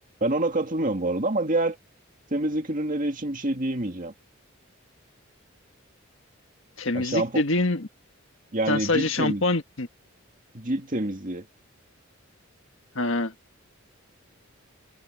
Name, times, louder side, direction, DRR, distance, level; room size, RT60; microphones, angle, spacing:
voice 1, 0.2-1.8 2.3-4.1 6.9-7.4 8.5-9.4 10.5-11.5, right 2 dB, 40° right, 2.2 m, -27 dB
voice 2, 6.8-7.9 8.7-9.9 12.9-13.3, left 2 dB, 65° left, 1.6 m, -25 dB
head